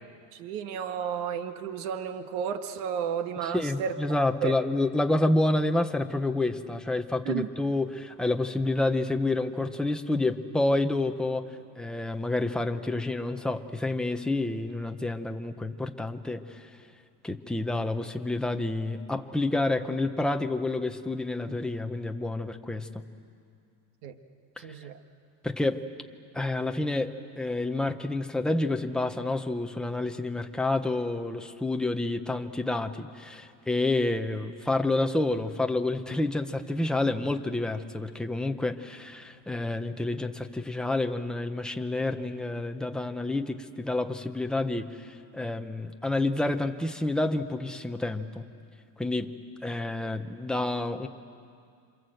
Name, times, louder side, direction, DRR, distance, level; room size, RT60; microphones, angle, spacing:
voice 1, 0.3-4.0 4.4-4.6 7.3-7.5 24.0-24.2 24.6-25.0, right 8 dB, 75° right, 8 dB, 1.8 m, -32 dB
voice 2, 3.4-11.5 11.8-16.7 17.2-23.0 24.6-24.7 25.4-25.8 26.3-48.4 49.0-49.3 49.6-51.1, left 2 dB, ahead, 5 dB, 0.7 m, -29 dB
28.0 x 26.5 x 7.8 m, 2.4 s
cardioid pair, 150°, 50 cm